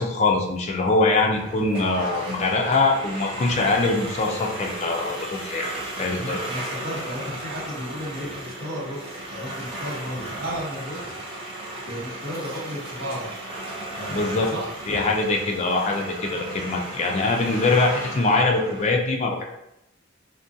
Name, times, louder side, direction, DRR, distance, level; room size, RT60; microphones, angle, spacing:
voice 1, 0.0-5.7 6.0-6.4 14.1-14.5 14.9-19.4, left 3 dB, 35° left, 1 dB, 0.4 m, -23 dB
sound 1, 1.3-18.9, right 1 dB, 30° right, 0.5 m, -35 dB
voice 2, 6.1-11.5 11.9-13.4 14.0-14.7, equal, 55° right, -5 dB, 0.9 m, -34 dB
2.5 x 2.1 x 2.6 m, 0.83 s
head